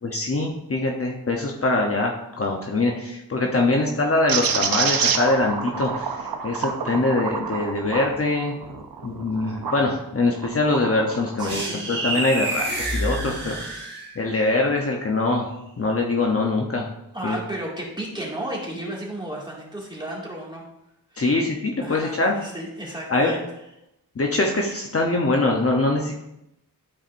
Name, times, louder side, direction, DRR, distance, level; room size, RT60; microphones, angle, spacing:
voice 1, 0.0-8.5 9.0-15.5 15.8-16.9 17.2-17.4 21.2-22.4 23.1-23.3 24.1-26.2, left 2 dB, 40° left, 0 dB, 0.9 m, -23 dB
sound 1, 4.3-9.9 10.4-11.6, right 6 dB, 75° right, 0.8 m, -28 dB
voice 2, 11.4-11.9 17.1-20.7 21.1-21.2 21.8-23.4, right 1 dB, 15° right, -4 dB, 2.2 m, -33 dB
sound 2, 11.5-14.3, right 1 dB, 30° right, 3.0 m, -28 dB
12.0 x 4.8 x 2.6 m, 0.86 s
wide cardioid pair, 90°, 36 cm